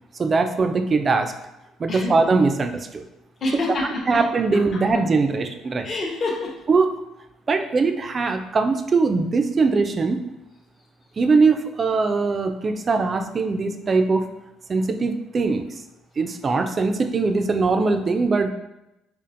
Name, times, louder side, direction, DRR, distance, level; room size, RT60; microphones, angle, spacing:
voice 1, 0.2-1.3 1.8-3.1 4.1-5.9 6.7-6.9 7.5-10.3 11.2-14.3 14.7-15.7 16.2-18.5, right 4 dB, 30° right, 7 dB, 0.3 m, -21 dB
voice 2, 3.4-4.2 5.8-6.5, left 2 dB, 40° left, -1 dB, 0.7 m, -26 dB
5.1 x 2.4 x 2.5 m, 0.90 s
cardioid pair, 130°, 0 cm